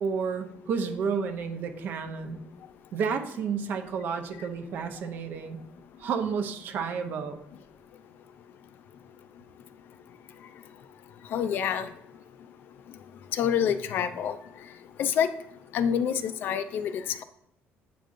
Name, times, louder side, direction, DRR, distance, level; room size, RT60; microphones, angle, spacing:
voice 1, 0.0-2.4 2.9-5.6 6.0-7.4, right 6 dB, 50° right, 6 dB, 0.6 m, -31 dB
voice 2, 11.3-11.9 13.3-14.4 15.0-15.3 15.7-17.2, left 8 dB, 50° left, 12 dB, 0.4 m, -27 dB
8.3 x 5.1 x 2.5 m, 0.75 s
cardioid pair, 180°, 4 cm